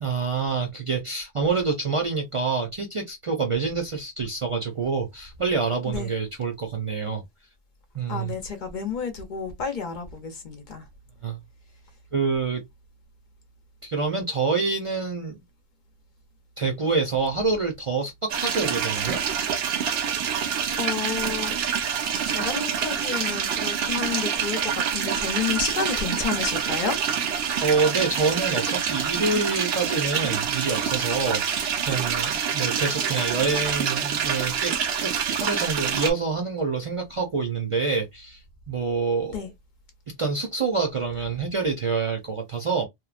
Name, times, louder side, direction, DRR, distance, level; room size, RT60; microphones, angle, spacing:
voice 1, 0.0-7.2 7.9-8.3 11.2-11.4 12.1-12.6 13.8-15.4 16.6-19.2 27.6-34.7 35.0-39.5 40.2-42.9, right 4 dB, 40° right, 0.5 m, -27 dB
voice 2, 8.1-10.8 20.3-20.5 20.8-21.5 22.3-27.0 39.3-39.5, left 5 dB, 55° left, 0.8 m, -30 dB
sound 1, 18.3-36.1, right 7 dB, 80° right, 0.8 m, -26 dB
2.9 x 2.0 x 2.4 m
omnidirectional pair, 1.0 m